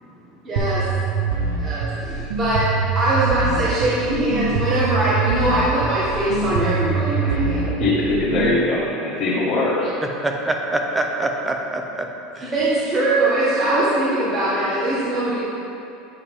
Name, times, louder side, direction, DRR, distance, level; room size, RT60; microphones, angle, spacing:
voice 1, 0.4-0.9 1.6-7.7 12.5-15.4, right 1 dB, 35° right, -8 dB, 1.4 m, -21 dB
sound 1, 0.6-8.6, right 4 dB, 80° right, 0.7 m, -24 dB
voice 2, 7.2-9.9, left 2 dB, 45° left, -9 dB, 1.6 m, -22 dB
voice 3, 10.2-12.1 12.4-12.5, right 2 dB, 15° right, 3 dB, 0.8 m, -24 dB
8.6 x 4.8 x 3.6 m, 2.7 s
supercardioid pair, 95°, 0 cm